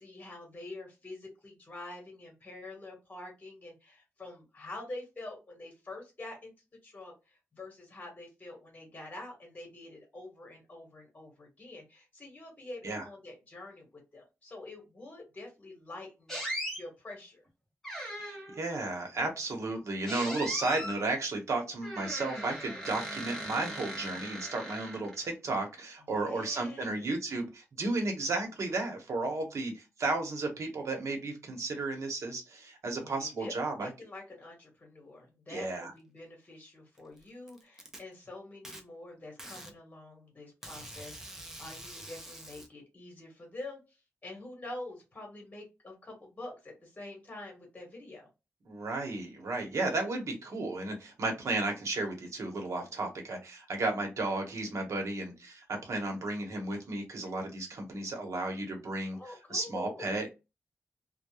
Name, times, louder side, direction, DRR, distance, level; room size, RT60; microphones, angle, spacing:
voice 1, 0.0-6.5 6.8-17.4 26.1-27.1 32.9-48.3 59.1-60.3, left 2 dB, 30° left, 0 dB, 1.2 m, -46 dB
sound 1, 16.3-16.8 17.8-18.6 20.0-21.0 21.8-25.3, equal, 10° left, 0.9 m, -39 dB
voice 2, 18.2-33.9 35.5-35.9 48.7-59.2 59.5-60.3, right 2 dB, 70° right, 3 dB, 0.9 m, -33 dB
Packing tape duct tape, 37.0-38.0 38.6-38.8 39.4-39.7 40.6-42.7, right 1 dB, 10° right, 0.5 m, -46 dB
2.3 x 2.1 x 2.9 m, 0.26 s
wide cardioid pair, 150°, 5 cm